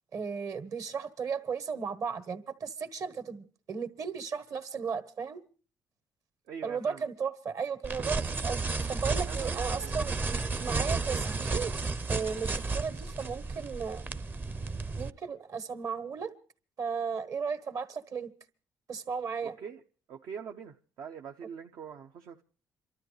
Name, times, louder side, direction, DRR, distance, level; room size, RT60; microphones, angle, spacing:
voice 1, 0.1-5.4 6.6-8.6 8.9-11.7 12.1-14.1 15.0-16.3 16.8-18.3 18.9-19.6, right 6 dB, 55° right, 1.4 m, -35 dB
voice 2, 6.5-7.0 9.2-10.0 19.4-19.8 20.1-22.4, right 7 dB, 70° right, 0.7 m, -44 dB
sound 1, 7.8-15.1, right 3 dB, 30° right, 0.7 m, -32 dB
28.0 x 13.0 x 3.2 m
cardioid pair, 100°, 7 cm